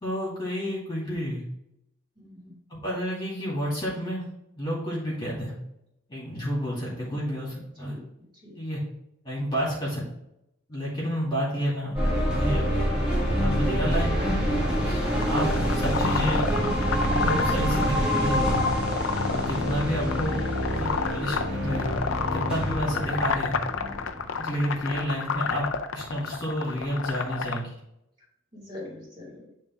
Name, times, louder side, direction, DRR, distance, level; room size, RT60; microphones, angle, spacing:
voice 1, 0.0-1.4 2.7-4.2 4.6-5.5 6.1-8.0 8.5-8.8 9.2-10.0 10.7-12.0 12.3-12.6 13.4-14.4 14.7-16.5 17.2-18.6 19.3-20.4 20.7-21.9 22.3-23.5 24.4-25.7 25.9-27.7, equal, 20° left, -6 dB, 2.3 m, -30 dB
voice 2, 2.2-2.6 7.8-8.0 8.4-8.6 23.7-24.0 28.5-29.5, left 1 dB, 25° right, -6 dB, 2.5 m, -43 dB
sound 1, 11.9-24.7, equal, 5° right, 1.9 m, -26 dB
sound 2, 15.1-27.6, left 6 dB, 65° left, 0.5 m, -31 dB
9.8 x 3.4 x 3.5 m, 0.83 s
head